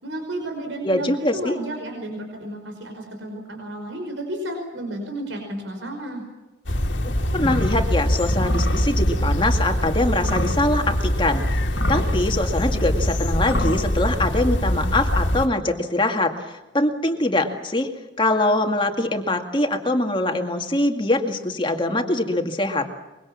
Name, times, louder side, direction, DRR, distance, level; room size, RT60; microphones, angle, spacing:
voice 1, 0.0-6.3, right 1 dB, 85° right, 3 dB, 5.2 m, -32 dB
voice 2, 0.8-1.6 7.3-11.4 11.9-22.9, left 2 dB, 25° left, 5 dB, 2.1 m, -23 dB
sound 1, 6.7-15.5, equal, 80° left, 2.4 m, -23 dB
24.0 x 23.0 x 7.3 m, 1.1 s
head